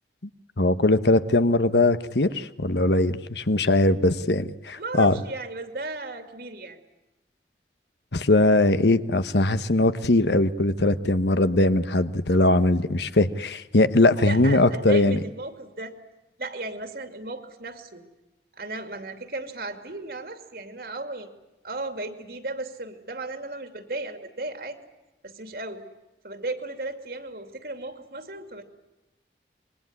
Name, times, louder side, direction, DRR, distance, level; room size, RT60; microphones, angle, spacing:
voice 1, 0.6-5.2 8.1-15.2, left 2 dB, 75° left, 12 dB, 1.2 m, -21 dB
voice 2, 4.8-6.8 14.2-15.9 16.4-18.0 18.5-21.3 21.6-24.8 25.2-25.8 26.2-28.6, right 2 dB, 55° right, 7 dB, 2.7 m, -35 dB
26.0 x 22.0 x 9.8 m, 1.0 s
head